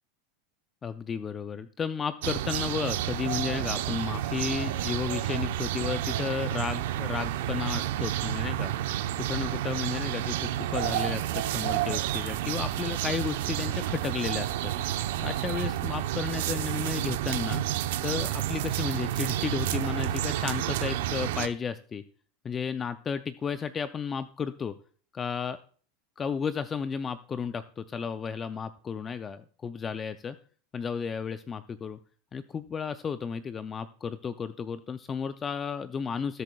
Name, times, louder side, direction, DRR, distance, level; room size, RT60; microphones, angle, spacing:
voice 1, 0.8-8.7 9.2-14.7 15.2-17.6 18.0-22.0 22.4-24.7 25.1-25.6 26.2-30.4 30.7-32.0 32.3-36.4, left 6 dB, 20° left, 12 dB, 0.4 m, -33 dB
sound 1, 2.2-21.5, right 12 dB, 75° right, 0.7 m, -30 dB
19.5 x 8.2 x 2.3 m, 0.43 s
supercardioid pair, 145°, 0 cm